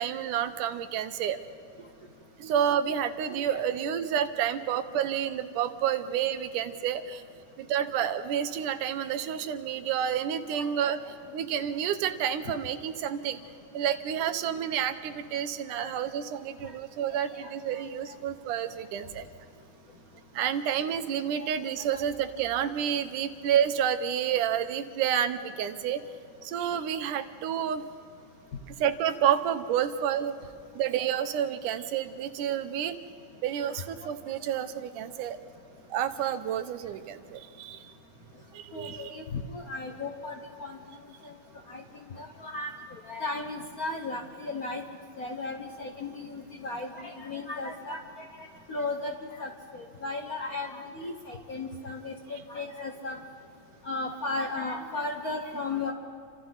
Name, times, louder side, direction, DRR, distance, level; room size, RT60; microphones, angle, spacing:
voice 1, 0.0-1.4 1.8-1.9 2.4-7.2 7.6-13.4 13.7-19.3 20.3-26.0 26.4-27.8 28.8-30.4 30.8-33.0 33.4-35.4 35.9-37.9 38.5-39.2, right 9 dB, 90° right, 9 dB, 2.5 m, -29 dB
voice 2, 38.7-40.3 40.6-40.8 41.2-41.3 41.7-41.8 42.2-42.7 43.1-44.8 45.2-48.0 48.7-49.1 49.4-49.5 49.8-52.1 52.5-53.2 53.8-55.9, left 3 dB, 70° left, 3 dB, 0.8 m, -35 dB
30.0 x 26.0 x 4.0 m, 2.4 s
omnidirectional pair, 3.5 m